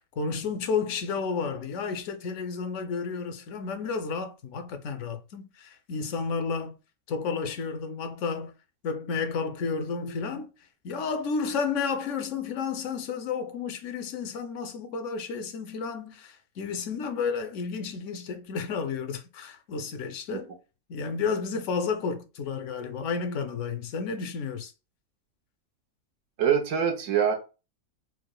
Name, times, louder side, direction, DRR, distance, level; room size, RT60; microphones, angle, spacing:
voice 1, 0.0-6.8 7.1-8.5 8.8-10.5 10.8-20.5 20.9-24.7, left 5 dB, 65° left, 0.8 m, -31 dB
voice 2, 26.4-27.3, right 8 dB, 65° right, 1.0 m, -24 dB
4.6 x 2.0 x 2.3 m
omnidirectional pair, 1.5 m